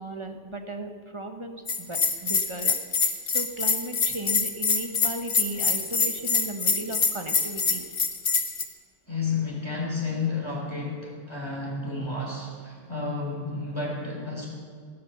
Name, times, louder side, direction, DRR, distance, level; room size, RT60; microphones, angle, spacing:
voice 1, 0.0-1.6 1.9-2.8 3.2-7.8, right 1 dB, 25° right, 6 dB, 1.1 m, -36 dB
Bell, 1.7-8.6, left 4 dB, 70° left, 1.8 m, -24 dB
voice 2, 9.1-14.5, left 4 dB, 20° left, -3 dB, 3.9 m, -31 dB
17.0 x 12.0 x 7.0 m, 2.1 s
omnidirectional pair, 1.3 m